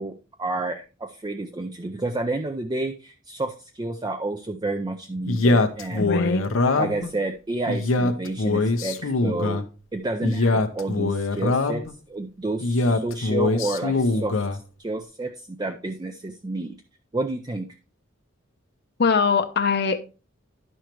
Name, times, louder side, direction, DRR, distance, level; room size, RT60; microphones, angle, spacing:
voice 1, 0.0-6.1 6.8-9.6 9.9-16.8 17.1-17.7, right 2 dB, 20° right, 7 dB, 0.4 m, -30 dB
Male speech man speaking, 5.3-7.1 7.7-9.7 10.2-11.9 12.6-14.6, left 2 dB, 90° left, 0.8 m, -23 dB
voice 2, 6.0-6.4 19.0-20.0, left 5 dB, 55° left, 5 dB, 0.7 m, -21 dB
10.5 x 6.4 x 3.0 m, 0.33 s
head